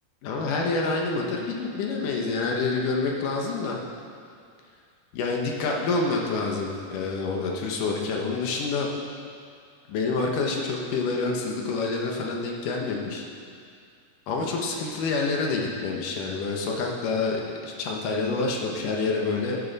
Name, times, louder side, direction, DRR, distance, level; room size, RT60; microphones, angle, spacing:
voice 1, 0.2-3.8 5.1-8.9 9.9-13.2 14.3-19.6, left 3 dB, 75° left, 0 dB, 2.6 m, -27 dB
13.0 x 10.5 x 4.0 m, 2.3 s
omnidirectional pair, 4.0 m